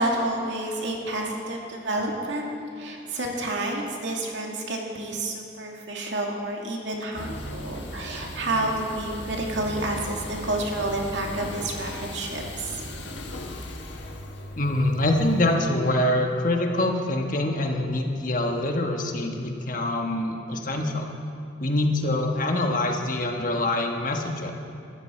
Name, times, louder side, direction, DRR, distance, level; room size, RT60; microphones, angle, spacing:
voice 1, 0.0-12.8, right 1 dB, 75° right, 0 dB, 2.3 m, -29 dB
sound 1, 7.2-15.5, left 1 dB, 70° left, 1.4 m, -37 dB
voice 2, 14.6-21.1 21.6-24.5, left 1 dB, 45° left, 3 dB, 1.3 m, -25 dB
18.5 x 13.5 x 4.5 m, 2.5 s
head